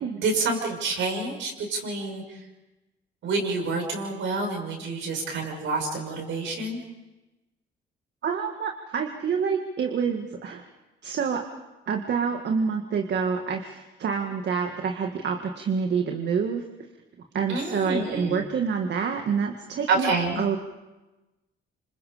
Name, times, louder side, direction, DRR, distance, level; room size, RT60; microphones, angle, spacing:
voice 1, 0.2-2.2 3.2-6.8 17.5-18.4 19.9-20.4, right 3 dB, 75° right, 2 dB, 6.4 m, -28 dB
voice 2, 8.2-10.6 11.0-11.4 11.9-16.6 17.3-20.6, right 6 dB, 60° right, 3 dB, 1.9 m, -27 dB
27.5 x 26.5 x 5.1 m, 1.1 s
cardioid pair, 90°, 20 cm